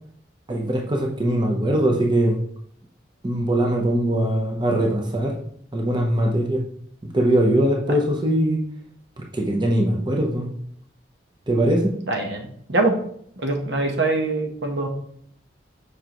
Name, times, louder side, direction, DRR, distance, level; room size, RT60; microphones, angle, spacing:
voice 1, 0.5-2.4 3.2-5.4 5.7-6.6 7.1-8.6 9.3-10.5 11.5-11.9, right 1 dB, 25° right, 1 dB, 0.8 m, -21 dB
voice 2, 12.1-13.0 13.4-14.9, right 2 dB, 75° right, 3 dB, 1.1 m, -23 dB
7.3 x 4.8 x 3.0 m, 0.65 s
head